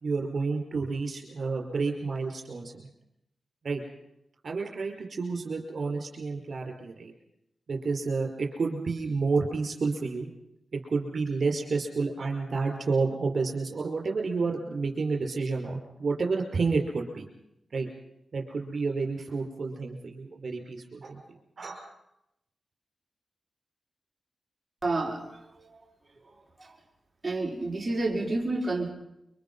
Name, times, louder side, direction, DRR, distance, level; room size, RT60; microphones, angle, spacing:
voice 1, 0.0-2.9 3.6-3.8 4.4-7.1 7.7-10.3 10.7-17.3 17.7-17.9 18.3-21.2 21.6-21.8, right 4 dB, 60° right, 2 dB, 5.2 m, -30 dB
voice 2, 24.8-25.8 26.2-26.8 27.2-28.9, right 2 dB, 20° right, -2 dB, 5.4 m, -30 dB
29.0 x 25.0 x 5.6 m, 0.83 s
cardioid pair, 80°, 0 cm